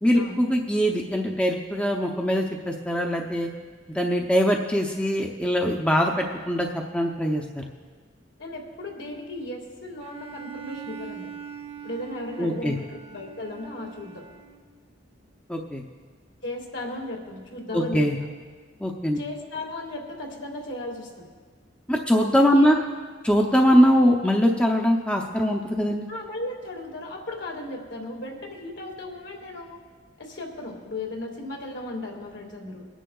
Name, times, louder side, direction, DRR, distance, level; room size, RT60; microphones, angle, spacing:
voice 1, 0.0-3.5 3.9-7.6 12.4-12.8 15.5-15.8 17.7-18.2 18.8-19.2 21.9-22.8 23.2-26.1, equal, 5° left, 1 dB, 0.5 m, -22 dB
voice 2, 8.4-11.3 11.8-14.3 16.4-18.0 19.2-21.3 22.5-22.9 26.1-29.8 30.2-32.9, left 2 dB, 70° left, 0 dB, 1.9 m, -36 dB
Bowed string instrument, 10.0-14.7, right 8 dB, 30° right, 0.8 m, -42 dB
22.5 x 10.0 x 2.3 m, 1.5 s
head